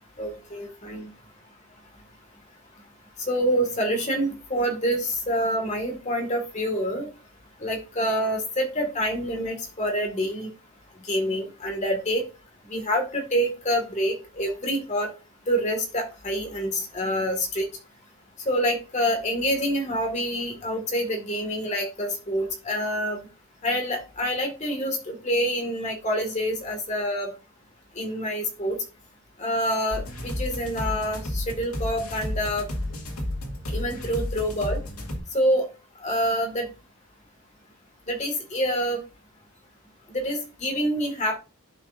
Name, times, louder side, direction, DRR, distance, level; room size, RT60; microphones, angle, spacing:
voice 1, 0.2-1.1 3.3-7.1 7.6-10.5 11.0-12.2 12.7-15.1 15.5-17.7 18.5-23.2 23.6-27.3 27.9-28.8 29.4-32.7 33.7-34.8 35.3-35.7 36.0-36.7 38.1-39.0 40.1-41.4, equal, 30° left, 2 dB, 2.0 m, -27 dB
sound 1, 29.9-35.2, left 1 dB, 80° left, 2.3 m, -32 dB
11.5 x 5.0 x 2.6 m, 0.32 s
head